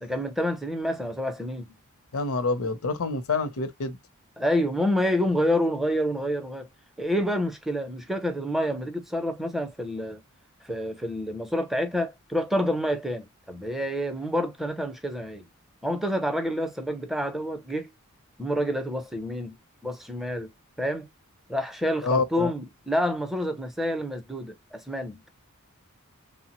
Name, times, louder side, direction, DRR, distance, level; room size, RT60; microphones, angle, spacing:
voice 1, 0.0-1.7 4.4-6.7 7.0-10.2 10.6-15.5 15.8-17.9 18.4-19.6 19.8-20.5 20.8-21.1 21.5-25.2, equal, ahead, 0.5 m, -28 dB
voice 2, 2.1-4.0 22.0-22.5, left 3 dB, 70° left, 0.6 m, -27 dB
3.1 x 2.0 x 2.9 m
head